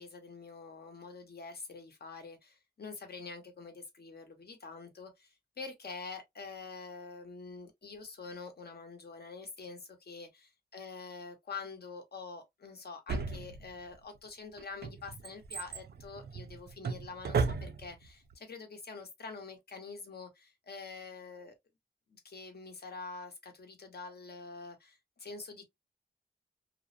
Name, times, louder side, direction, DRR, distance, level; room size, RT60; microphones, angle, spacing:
voice 1, 0.0-21.5 22.1-25.7, left 4 dB, 65° left, 0.9 m, -46 dB
Drawer open or close, 13.1-14.0 14.6-18.1 18.3-18.4, right 5 dB, 70° right, 0.4 m, -35 dB
2.5 x 2.0 x 2.5 m
cardioid pair, 60°, 17 cm